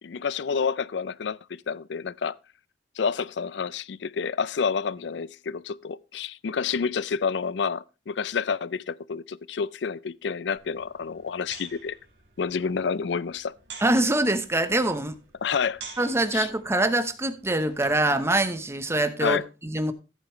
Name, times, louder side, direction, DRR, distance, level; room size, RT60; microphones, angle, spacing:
voice 1, 0.0-2.3 3.0-12.0 12.4-13.6 15.4-15.8 16.3-16.5 19.2-19.4, left 6 dB, 80° left, 0.5 m, -29 dB
sound 1, 10.6-18.1, right 5 dB, 90° right, 3.3 m, -48 dB
voice 2, 13.8-15.2 16.0-19.9, right 1 dB, 15° right, 1.0 m, -24 dB
14.5 x 8.2 x 3.1 m
head